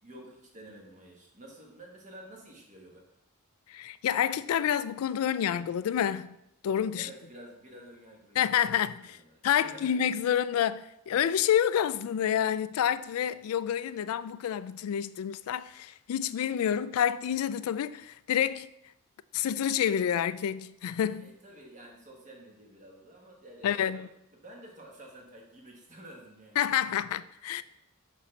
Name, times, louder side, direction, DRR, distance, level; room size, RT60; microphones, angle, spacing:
voice 1, 0.0-3.0 6.9-8.7 9.0-10.0 21.2-24.0 24.3-26.6, right 1 dB, 35° right, 1.3 m, -50 dB
voice 2, 3.7-6.4 6.6-7.1 8.4-9.1 9.4-18.7 19.3-21.3 23.6-24.0 26.6-27.6, left 9 dB, 85° left, 0.3 m, -28 dB
6.1 x 5.5 x 3.2 m
head